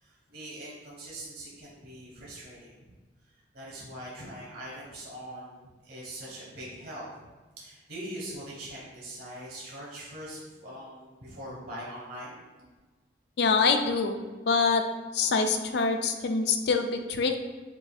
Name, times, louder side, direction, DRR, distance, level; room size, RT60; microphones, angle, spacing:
voice 1, 0.0-2.7 3.5-7.3 7.6-12.4, right 1 dB, 65° right, -6 dB, 1.2 m, -42 dB
voice 2, 13.4-14.2 14.4-14.8 15.1-17.4, left 4 dB, 60° left, 6 dB, 0.4 m, -25 dB
7.5 x 2.5 x 2.3 m, 1.3 s
head